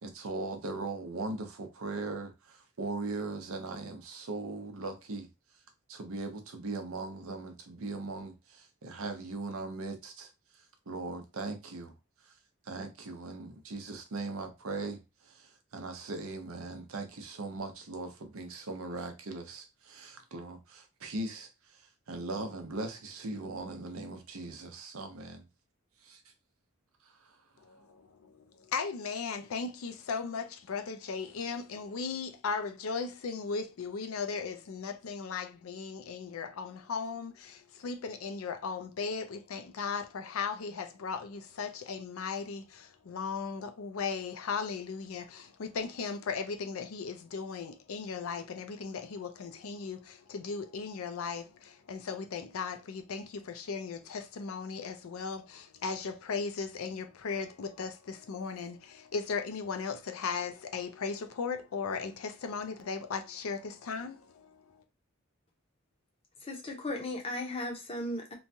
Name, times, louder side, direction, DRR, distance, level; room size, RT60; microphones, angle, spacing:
voice 1, 0.0-5.3 5.9-10.3 10.9-11.9 12.7-25.5 26.0-26.2 27.0-27.4, right 3 dB, 75° right, 0.7 m, -39 dB
voice 2, 27.6-64.8, left 5 dB, 80° left, 0.4 m, -37 dB
voice 3, 66.4-68.3, left 1 dB, 25° left, 0.7 m, -36 dB
3.0 x 2.2 x 2.7 m
head